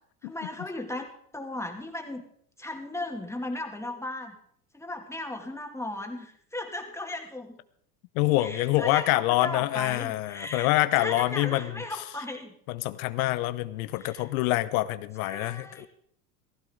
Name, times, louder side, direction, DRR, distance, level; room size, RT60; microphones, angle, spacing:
voice 1, 0.2-2.2 2.6-4.4 4.7-7.6 8.4-10.7 11.0-12.5 14.0-14.3 15.2-15.9, left 1 dB, 5° left, 3 dB, 2.6 m, -36 dB
voice 2, 8.1-11.7 12.7-15.9, left 17 dB, 65° left, 14 dB, 0.9 m, -26 dB
15.5 x 15.5 x 3.9 m, 0.66 s
hypercardioid pair, 85°, 46 cm